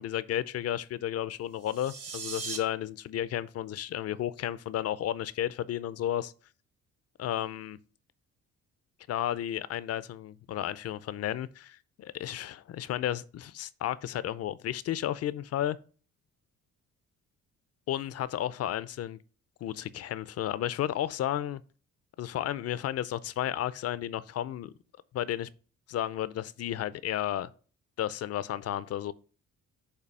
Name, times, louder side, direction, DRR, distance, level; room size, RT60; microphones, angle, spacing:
voice 1, 0.0-6.3 7.2-7.8 9.1-15.8 17.9-19.2 19.6-21.6 22.2-24.7 25.1-25.5 25.9-27.5 28.0-29.1, left 11 dB, 55° left, 0.5 m, -33 dB
sound 1, 1.5-2.6, right 5 dB, 55° right, 1.5 m, -38 dB
6.7 x 2.7 x 5.3 m
cardioid pair, 90°, 30 cm